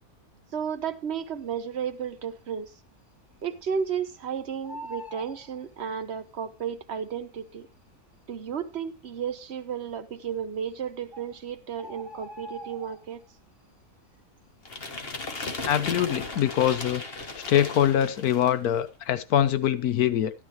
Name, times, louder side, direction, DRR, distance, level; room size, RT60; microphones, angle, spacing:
voice 1, 0.5-2.7 3.4-7.7 8.3-13.2, right 7 dB, 45° right, 1.2 m, -33 dB
Bird, 1.7-2.3 2.6-2.7 3.0-4.2 4.4-6.3 7.1-7.2 7.9-8.0 8.2-8.3 8.9-9.4 10.3-10.4 10.8-10.9 11.1-13.4 13.7-14.1 14.4-15.7 16.1-16.3, equal, ahead, 4.1 m, -44 dB
sound 1, 14.6-18.7, left 3 dB, 40° left, 1.6 m, -36 dB
voice 2, 15.6-17.0 17.5-20.3, left 10 dB, 75° left, 1.4 m, -23 dB
12.0 x 12.0 x 3.1 m
omnidirectional pair, 1.6 m